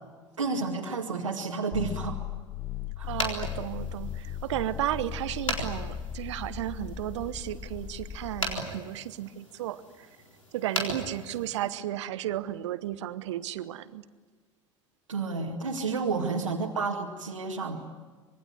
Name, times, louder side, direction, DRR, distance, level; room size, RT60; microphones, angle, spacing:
voice 1, 0.4-2.3 3.0-3.1 15.1-17.9, right 4 dB, 80° right, 0 dB, 2.1 m, -31 dB
sound 1, 1.7-8.6, left 8 dB, 25° left, 1.2 m, -37 dB
sound 2, 3.0-11.8, left 1 dB, 90° left, 4.1 m, -38 dB
voice 2, 3.0-10.1 10.5-14.0 16.1-16.5, right 13 dB, 65° right, 14 dB, 1.2 m, -34 dB
26.0 x 22.0 x 9.7 m, 1.4 s
figure-of-eight pair, 70°, 16 cm